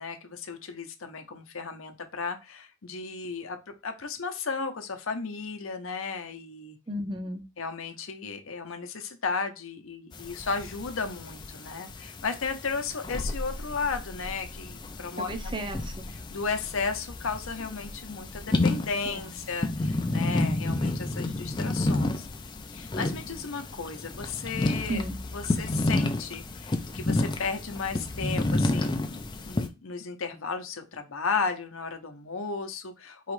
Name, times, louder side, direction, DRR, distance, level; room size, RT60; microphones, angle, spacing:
voice 1, 0.0-6.8 7.6-15.6 16.1-22.3 22.7-25.0 25.3-33.3, left 4 dB, 65° left, 6 dB, 0.7 m, -34 dB
voice 2, 6.9-7.4 15.2-16.0 19.0-19.4 24.9-25.2, right 1 dB, 20° right, 6 dB, 0.6 m, -34 dB
sound 1, 10.1-29.7, left 2 dB, 20° left, 0.4 m, -31 dB
4.7 x 3.1 x 3.1 m, 0.26 s
head